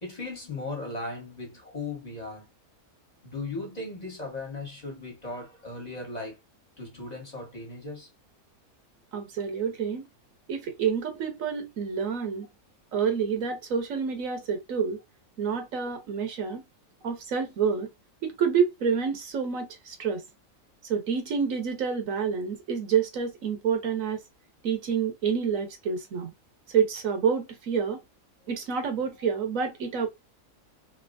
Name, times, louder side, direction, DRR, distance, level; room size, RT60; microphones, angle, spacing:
voice 1, 0.0-2.5 3.2-6.4 6.8-8.1, left 3 dB, 30° left, 1.4 m, -37 dB
voice 2, 9.1-10.1 10.5-12.5 12.9-15.0 15.4-16.6 17.0-17.9 18.2-20.2 20.8-24.2 24.6-26.3 26.7-28.0 28.5-30.1, right 6 dB, 70° right, 1.2 m, -28 dB
3.3 x 2.9 x 2.5 m
omnidirectional pair, 1.5 m